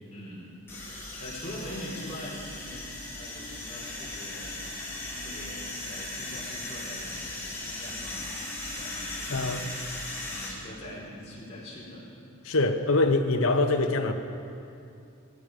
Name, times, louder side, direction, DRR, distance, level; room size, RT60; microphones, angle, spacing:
voice 1, 0.1-0.5 0.9-2.8 3.1-4.6 5.2-12.0, equal, 30° left, -5 dB, 4.3 m, -43 dB
sound 1, 0.7-10.5, left 2 dB, 10° left, 3.8 m, -37 dB
voice 2, 9.3-9.6 12.4-14.1, left 2 dB, 65° left, 5 dB, 1.0 m, -24 dB
17.0 x 16.0 x 5.1 m, 2.6 s
head